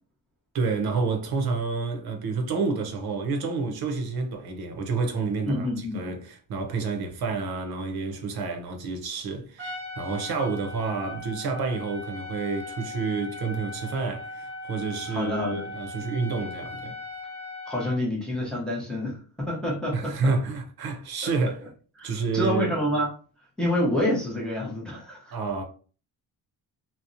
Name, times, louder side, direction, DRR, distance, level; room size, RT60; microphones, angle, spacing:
voice 1, 0.5-17.0 19.9-21.6 22.0-22.8 25.3-25.6, right 4 dB, 70° right, 0.6 m, -29 dB
voice 2, 5.4-6.0 15.1-15.7 17.7-20.3 21.2-21.3 22.0-23.1 23.6-25.4, left 1 dB, ahead, 0.6 m, -28 dB
Trumpet, 9.6-18.0, left 2 dB, 35° right, 0.8 m, -39 dB
2.7 x 2.0 x 2.4 m
wide cardioid pair, 165°, 38 cm